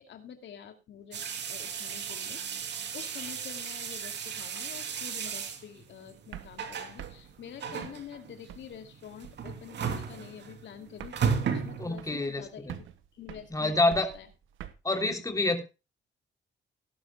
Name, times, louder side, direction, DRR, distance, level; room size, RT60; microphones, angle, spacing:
voice 1, 0.0-14.3, left 8 dB, 70° left, 6 dB, 2.5 m, -47 dB
sound 1, 1.1-12.3, right 6 dB, 60° right, 2.9 m, -35 dB
sound 2, 6.3-8.9 9.2-9.6 9.9-10.3 10.6-10.7 10.9-12.4 12.7-14.7, right 11 dB, 85° right, 1.4 m, -46 dB
voice 2, 11.8-12.7 13.5-14.1 14.8-15.6, left 2 dB, 15° left, 5 dB, 3.1 m, -27 dB
18.0 x 11.0 x 2.2 m, 0.28 s
cardioid pair, 90°, 20 cm